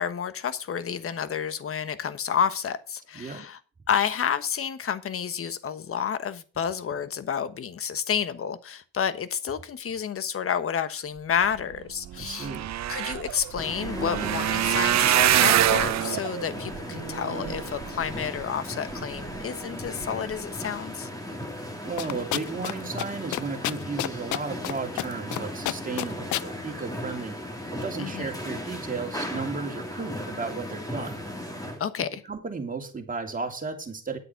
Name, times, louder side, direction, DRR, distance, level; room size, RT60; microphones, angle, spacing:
voice 1, 0.0-3.6 3.9-12.5 12.9-21.1 28.0-28.3 31.8-32.2, left 8 dB, 45° left, 1.3 m, -30 dB
voice 2, 3.1-3.5 12.1-12.7 21.8-27.4 27.7-31.2 32.2-34.2, right 4 dB, 25° right, 3.1 m, -34 dB
sound 1, 11.7-11.8 12.0-18.4 19.0-19.4 19.8-20.0 20.3-20.4, right 12 dB, 60° right, 0.8 m, -25 dB
sound 2, 13.6-31.8, left 1 dB, 10° left, 3.4 m, -36 dB
sound 3, 22.0-22.7 23.0-23.1 23.3-24.7 25.0-25.4 25.6-26.5, left 14 dB, 75° left, 0.6 m, -28 dB
10.0 x 8.5 x 5.8 m
cardioid pair, 90°, 30 cm